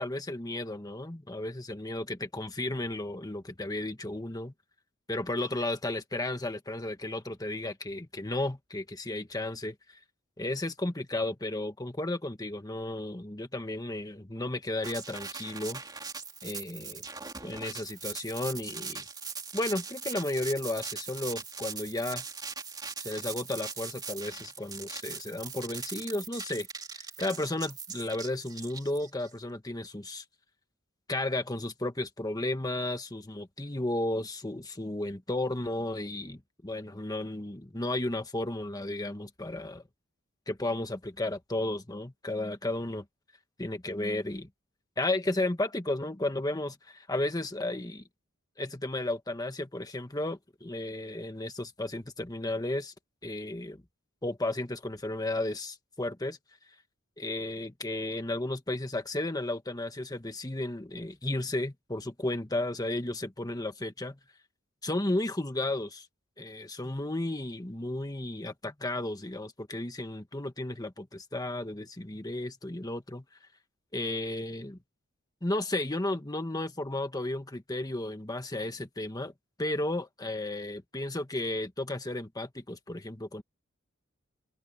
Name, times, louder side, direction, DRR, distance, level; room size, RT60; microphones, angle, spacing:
voice 1, 0.0-4.5 5.1-10.0 10.4-15.8 16.4-17.0 17.4-19.0 19.5-22.2 23.0-26.7 26.9-30.2 31.1-39.8 40.5-43.0 43.6-44.5 45.0-48.0 48.6-52.9 53.2-53.8 54.2-56.4 57.2-64.2 64.8-66.1 66.4-73.2 73.9-74.8 75.4-79.3 79.6-83.4, left 1 dB, 20° left, 1.6 m, -33 dB
sound 1, 14.8-29.3, right 5 dB, 20° right, 2.7 m, -40 dB
open air
head